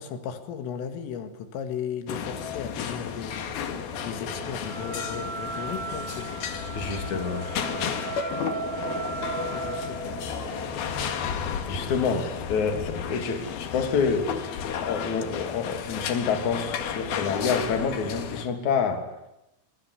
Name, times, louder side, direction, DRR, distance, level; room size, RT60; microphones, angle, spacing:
voice 1, 0.0-3.5 4.0-6.3 7.1-7.2 9.5-10.2, left 8 dB, 80° left, 9 dB, 4.5 m, -36 dB
sound 1, 2.1-18.5, left 7 dB, 60° left, 3.4 m, -33 dB
sound 2, 3.2-11.8, right 5 dB, 60° right, 4.7 m, -37 dB
voice 2, 6.7-7.9 11.7-14.3 14.6-19.1, left 5 dB, 40° left, 6 dB, 4.0 m, -28 dB
27.0 x 22.5 x 9.8 m, 0.89 s
omnidirectional pair, 5.8 m